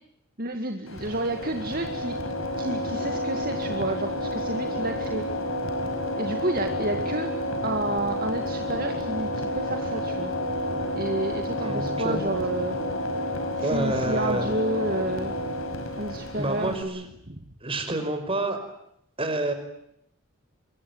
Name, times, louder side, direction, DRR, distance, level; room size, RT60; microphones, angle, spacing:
voice 1, 0.4-2.1 2.6-5.3 6.2-7.3 7.6-10.3 11.0-12.8 13.6-15.3 16.0-17.4, right 1 dB, 45° right, 5 dB, 2.1 m, -30 dB
sound 1, 0.9-16.8, left 1 dB, 75° left, 5.5 m, -30 dB
voice 2, 11.6-12.2 13.6-14.5 16.4-17.1 17.6-18.6 19.2-19.5, right 2 dB, 25° right, 7 dB, 5.2 m, -28 dB
26.0 x 22.5 x 9.4 m, 0.77 s
head